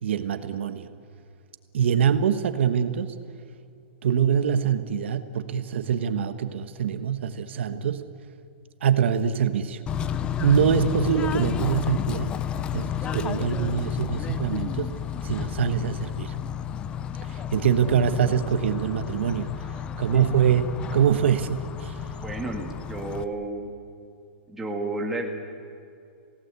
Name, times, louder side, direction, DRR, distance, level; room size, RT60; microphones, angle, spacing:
voice 1, 0.0-0.9 1.7-3.1 4.0-8.1 8.8-9.8 10.4-12.4 12.7-14.9 15.2-16.4 17.2-22.1, right 8 dB, 70° right, 10 dB, 1.4 m, -24 dB
Bird / Train, 9.9-23.2, left 9 dB, 15° left, 0.6 m, -31 dB
voice 2, 22.2-23.7 24.5-25.2, right 2 dB, 5° right, 0 dB, 2.3 m, -32 dB
29.0 x 18.0 x 8.3 m, 2.4 s
supercardioid pair, 170°, 6 cm